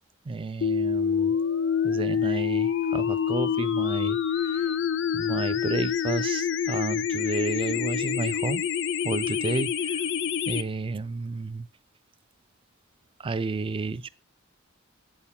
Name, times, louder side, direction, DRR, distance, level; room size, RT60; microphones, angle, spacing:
voice 1, 0.3-1.4 1.8-4.7 5.1-8.7 9.0-10.0 10.5-11.7 13.2-14.1, right 3 dB, 25° right, 0.3 m, -31 dB
sound 1, 0.6-10.6, left 8 dB, 55° left, 0.5 m, -27 dB
8.7 x 4.5 x 5.6 m
head